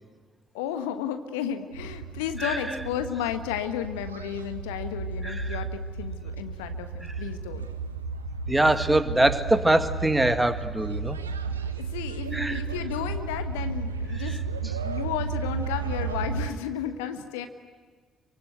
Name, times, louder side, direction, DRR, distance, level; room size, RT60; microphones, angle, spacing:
voice 1, 0.5-7.6 11.8-17.5, left 9 dB, 70° left, 9 dB, 1.3 m, -33 dB
sound 1, 1.7-16.5, right 4 dB, 80° right, 1.1 m, -33 dB
voice 2, 2.4-2.8 5.2-5.6 8.5-11.2 12.3-12.6 14.2-14.4, right 2 dB, 10° right, 9 dB, 1.9 m, -24 dB
28.5 x 24.5 x 8.1 m, 1.6 s
figure-of-eight pair, 45°, 0 cm